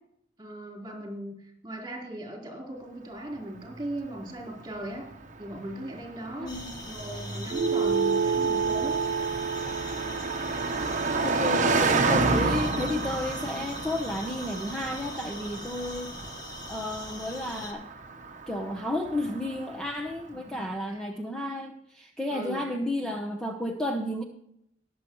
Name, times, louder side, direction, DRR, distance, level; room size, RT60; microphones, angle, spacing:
voice 1, 0.4-5.1 5.4-6.5 6.9-9.0 20.4-21.0 22.3-22.6, right 1 dB, 20° right, -2 dB, 4.1 m, -38 dB
Car passing by, 3.7-20.1, right 3 dB, 40° right, 1.0 m, -31 dB
sound 1, 6.4-17.7, left 2 dB, 20° left, 2.1 m, -42 dB
voice 2, 6.4-6.8 11.2-16.1 16.7-17.9 18.5-24.2, left 1 dB, 5° left, 2 dB, 1.0 m, -32 dB
sound 2, 7.5-12.3, right 5 dB, 60° right, 0.3 m, -29 dB
21.0 x 7.8 x 3.2 m, 0.74 s
head